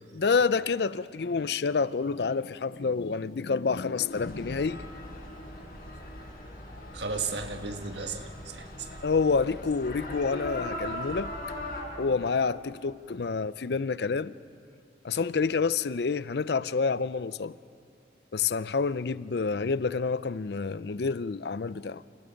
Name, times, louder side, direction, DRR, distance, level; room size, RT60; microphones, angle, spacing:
voice 1, 0.1-4.8 9.0-11.3 12.0-14.3 15.0-17.6 18.3-22.1, left 5 dB, 70° left, 0.5 m, -28 dB
sound 1, 4.1-11.8, left 1 dB, 55° left, 6.1 m, -40 dB
voice 2, 6.9-9.0, right 4 dB, 80° right, 1.6 m, -35 dB
29.0 x 28.5 x 5.2 m
head